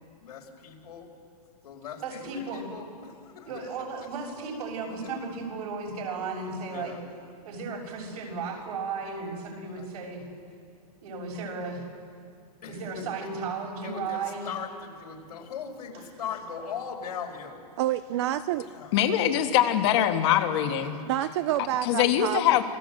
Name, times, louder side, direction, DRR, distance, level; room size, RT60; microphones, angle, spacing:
voice 1, 0.2-1.1 1.6-3.7 6.7-7.0 9.6-9.9 12.6-13.3 13.8-17.6 18.5-18.9, left 7 dB, 85° left, 1 dB, 5.1 m, -40 dB
voice 2, 2.0-2.6 3.5-6.9 7.4-10.2 11.0-11.8 12.7-14.5, right 4 dB, 70° right, 0 dB, 6.9 m, -35 dB
voice 3, 17.8-18.7 21.0-22.6, right 13 dB, 45° right, 12 dB, 0.6 m, -28 dB
voice 4, 18.9-21.0 21.9-22.6, left 11 dB, 45° left, 5 dB, 1.8 m, -23 dB
27.5 x 20.0 x 7.8 m, 2.3 s
supercardioid pair, 160°, 20 cm